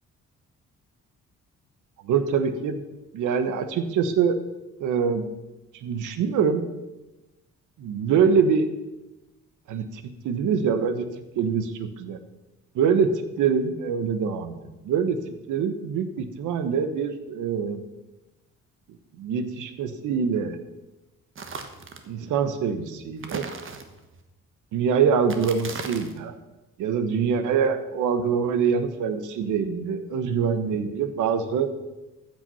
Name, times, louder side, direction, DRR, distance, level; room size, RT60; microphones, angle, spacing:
voice 1, 2.0-2.8 3.1-4.4 4.8-5.3 5.7-6.7 7.8-8.7 9.7-11.1 11.4-12.2 12.7-15.2 15.5-17.8 19.2-20.6 22.1-23.5 24.7-26.3 26.8-31.7, right 6 dB, 85° right, 10 dB, 1.2 m, -24 dB
sound 1, 21.3-22.1 23.2-24.2 25.2-26.2, right 5 dB, 45° right, 1.3 m, -37 dB
14.5 x 6.0 x 5.5 m, 1.0 s
cardioid pair, 90°, 30 cm